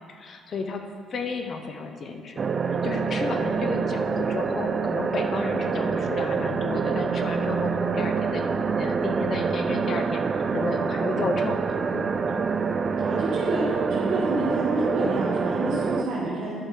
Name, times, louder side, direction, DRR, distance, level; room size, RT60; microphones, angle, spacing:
voice 1, 0.1-2.4 2.8-8.4 8.7-12.4, left 4 dB, 45° left, 5 dB, 0.8 m, -33 dB
sound 1, 2.4-16.0, right 5 dB, 35° right, 0.5 m, -26 dB
voice 2, 13.0-16.6, right 2 dB, 60° right, -7 dB, 1.8 m, -28 dB
11.0 x 6.6 x 4.6 m, 2.2 s
cardioid pair, 120°, 0 cm